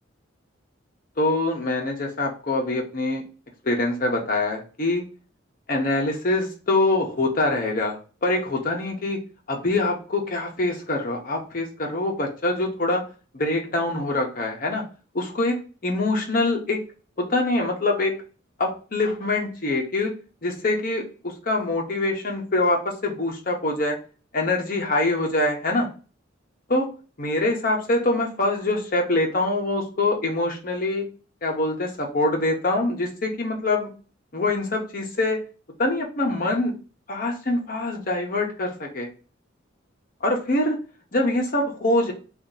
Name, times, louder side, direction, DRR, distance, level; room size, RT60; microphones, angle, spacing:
voice 1, 1.2-3.2 3.6-5.0 5.7-9.2 9.5-13.0 13.3-14.8 15.1-16.8 17.2-18.1 18.6-20.1 20.4-24.0 24.3-25.9 26.7-26.9 27.2-31.0 31.4-33.9 34.3-35.4 35.8-36.7 37.1-39.1 40.2-40.8 41.1-42.1, left 2 dB, 45° left, 1 dB, 0.8 m, -24 dB
2.8 x 2.5 x 3.8 m, 0.36 s
head